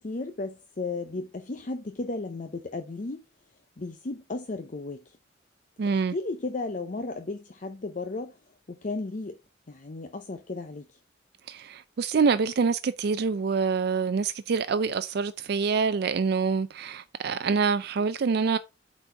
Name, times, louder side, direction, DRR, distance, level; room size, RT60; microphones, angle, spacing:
voice 1, 0.0-3.2 3.8-5.2 5.9-8.4 8.7-9.4 9.7-11.0, left 3 dB, 45° left, 0.6 m, -34 dB
voice 2, 5.8-6.1 11.5-18.6, right 5 dB, 60° right, 0.4 m, -26 dB
8.1 x 4.1 x 4.4 m
head